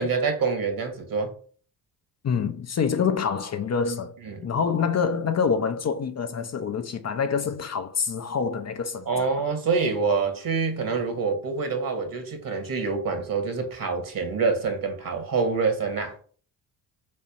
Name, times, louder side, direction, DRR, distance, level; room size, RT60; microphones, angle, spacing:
voice 1, 0.0-1.3 4.2-4.4 9.1-16.2, right 4 dB, 50° right, 2.2 m, -26 dB
voice 2, 2.2-4.1 4.4-9.3, left 6 dB, 35° left, 0.8 m, -26 dB
4.3 x 4.2 x 5.5 m
hypercardioid pair, 45°, 43 cm